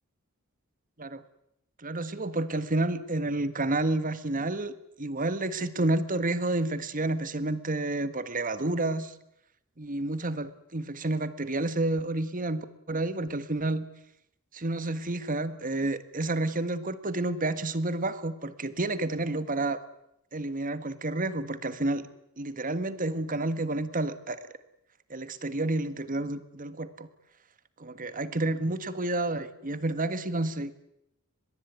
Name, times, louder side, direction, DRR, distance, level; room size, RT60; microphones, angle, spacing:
voice 1, 1.8-9.1 9.8-13.9 14.5-19.8 20.3-22.1 22.4-24.5 25.1-27.1 27.8-30.7, right 2 dB, 40° right, 13 dB, 1.6 m, -30 dB
23.5 x 21.5 x 9.5 m, 0.79 s
head